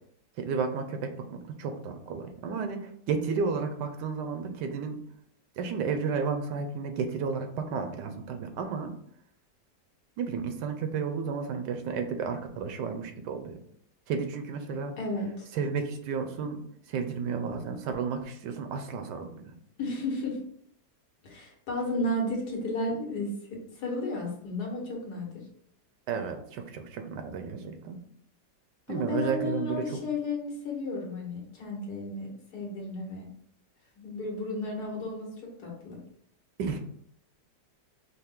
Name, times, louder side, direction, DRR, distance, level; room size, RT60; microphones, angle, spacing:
voice 1, 0.4-5.0 5.6-8.9 10.2-13.6 14.1-14.9 15.5-16.6 16.9-19.5 26.1-28.0 28.9-29.9 36.6-36.8, right 5 dB, 90° right, 6 dB, 1.3 m, -32 dB
voice 2, 15.0-15.5 19.8-20.4 21.2-25.4 28.9-33.3 34.0-36.0, left 2 dB, 70° left, -2 dB, 1.7 m, -33 dB
5.4 x 2.1 x 3.6 m, 0.67 s
omnidirectional pair, 1.8 m